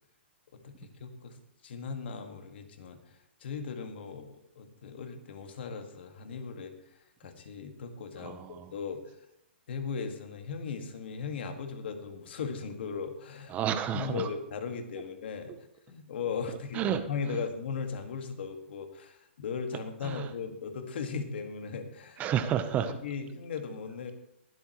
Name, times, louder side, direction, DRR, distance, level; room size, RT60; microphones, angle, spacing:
voice 1, 0.5-6.7 7.2-9.2 9.7-13.6 13.9-15.5 15.9-22.2 22.8-24.1, left 5 dB, 60° left, 6 dB, 1.9 m, -38 dB
voice 2, 8.2-8.7 13.5-14.3 16.7-17.0 20.0-20.3 22.2-22.9, right 9 dB, 25° right, 10 dB, 0.8 m, -30 dB
21.5 x 7.9 x 3.1 m, 0.80 s
hypercardioid pair, 140°, 6 cm